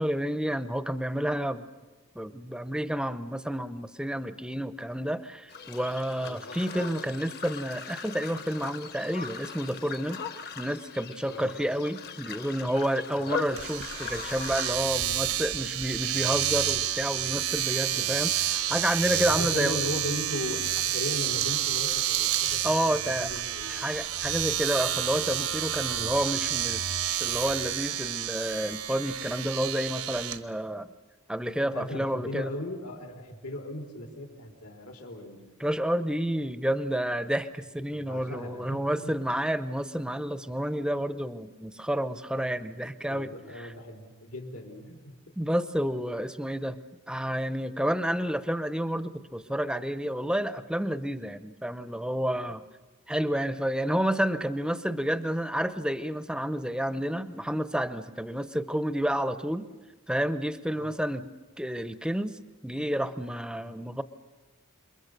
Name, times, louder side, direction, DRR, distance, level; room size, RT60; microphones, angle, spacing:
voice 1, 0.0-1.6 2.2-10.2 10.6-19.8 22.6-23.3 23.7-30.9 31.3-32.5 35.6-43.3 43.5-43.7 45.4-46.8 47.1-52.6 53.1-59.7 60.1-61.3 61.6-64.0, equal, 5° right, 13 dB, 0.7 m, -30 dB
sound 1, 5.5-14.8, left 5 dB, 45° left, 1.1 m, -39 dB
Domestic sounds home sounds, 13.6-30.4, right 11 dB, 75° right, 1.1 m, -29 dB
voice 2, 19.3-22.6 22.9-23.9 25.9-26.2 31.6-35.4 37.9-39.1 43.1-45.1 60.7-61.0, left 1 dB, 85° left, 2 dB, 4.0 m, -38 dB
28.0 x 22.5 x 6.7 m, 1.2 s
head